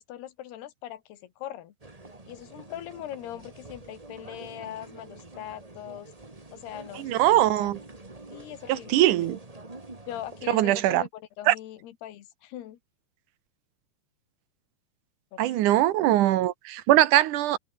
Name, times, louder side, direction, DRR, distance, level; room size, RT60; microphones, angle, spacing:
voice 1, 0.0-1.7 2.3-6.1 6.5-7.8 8.3-9.4 10.1-12.8 15.3-15.5, left 12 dB, 80° left, 3.7 m, -41 dB
sound 1, 1.8-10.5, right 2 dB, 20° right, 0.8 m, -47 dB
voice 2, 7.0-7.8 8.7-9.4 10.5-11.0 11.5-11.6 15.4-17.6, right 14 dB, 70° right, 2.1 m, -21 dB
omnidirectional pair, 4.6 m